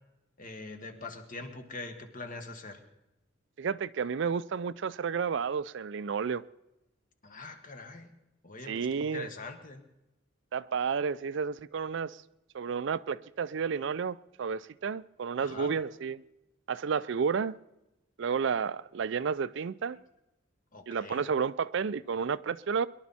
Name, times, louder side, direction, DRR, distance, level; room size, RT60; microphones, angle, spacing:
voice 1, 0.4-2.8 7.2-8.1 8.4-9.8 15.4-15.7 20.7-21.2, left 3 dB, 45° left, 6 dB, 1.6 m, -43 dB
voice 2, 3.6-6.4 8.7-9.3 10.5-12.2 12.5-16.2 16.7-17.6 18.2-20.0 20.9-22.9, right 6 dB, 65° right, 16 dB, 0.4 m, -31 dB
23.0 x 11.5 x 4.2 m, 0.91 s
head